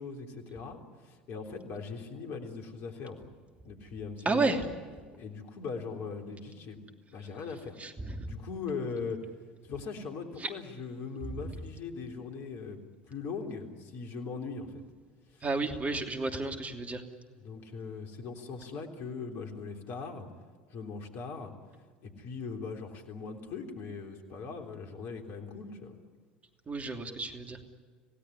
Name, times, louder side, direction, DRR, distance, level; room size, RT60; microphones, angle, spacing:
voice 1, 0.0-3.2 3.7-4.6 5.1-6.8 7.1-7.8 8.2-9.2 9.6-12.8 13.1-14.8 15.3-15.5 17.3-20.3 20.7-21.5 22.0-26.0, left 5 dB, 55° left, 4 dB, 3.5 m, -40 dB
voice 2, 4.2-4.6 7.8-8.3 10.4-10.5 15.4-17.0 26.7-27.6, right 3 dB, 30° right, 5 dB, 2.9 m, -31 dB
27.0 x 17.0 x 9.9 m, 1.5 s
hypercardioid pair, 70°, 5 cm